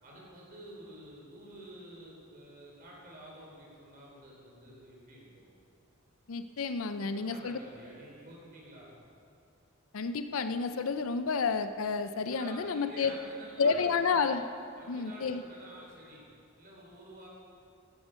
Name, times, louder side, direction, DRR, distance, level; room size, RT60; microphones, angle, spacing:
voice 1, 0.0-5.4 7.0-8.9 12.3-14.4 14.8-16.3 16.6-17.3, right 1 dB, 45° right, -4 dB, 3.9 m, -50 dB
voice 2, 6.3-7.6 9.9-13.1 13.6-14.4 14.9-15.4, left 5 dB, 75° left, 10 dB, 0.6 m, -30 dB
15.5 x 9.9 x 5.2 m, 2.6 s
head